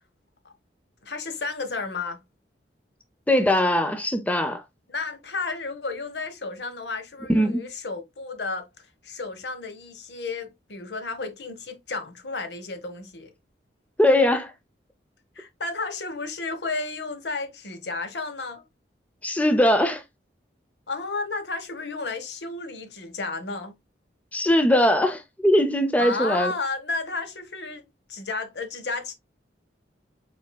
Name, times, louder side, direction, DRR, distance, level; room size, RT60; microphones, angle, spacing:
voice 1, 1.0-2.2 4.9-13.3 15.3-18.6 20.9-23.7 26.0-29.1, left 3 dB, 70° left, 1.1 m, -32 dB
voice 2, 3.3-4.6 7.3-7.6 14.0-14.5 19.2-20.0 24.3-26.5, left 1 dB, 10° left, 0.5 m, -21 dB
5.0 x 4.4 x 2.2 m
head